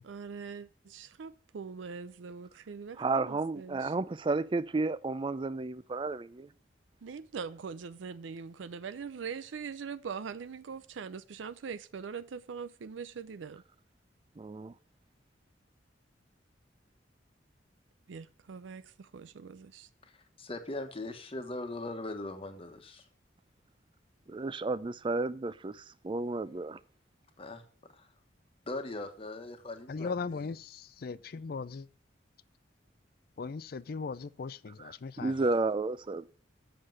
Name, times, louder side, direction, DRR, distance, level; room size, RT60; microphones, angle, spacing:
voice 1, 0.1-3.9 7.0-13.6 18.1-19.9, right 6 dB, 85° right, 0.5 m, -42 dB
voice 2, 3.0-6.5 14.4-14.7 24.3-26.8 35.2-36.3, right 3 dB, 25° right, 0.4 m, -32 dB
voice 3, 20.4-23.0 27.4-27.6 27.9-28.1 28.7-30.4, left 2 dB, 30° left, 1.2 m, -40 dB
voice 4, 29.9-31.9 33.4-35.4, left 4 dB, 55° left, 0.4 m, -38 dB
7.6 x 6.5 x 7.7 m
head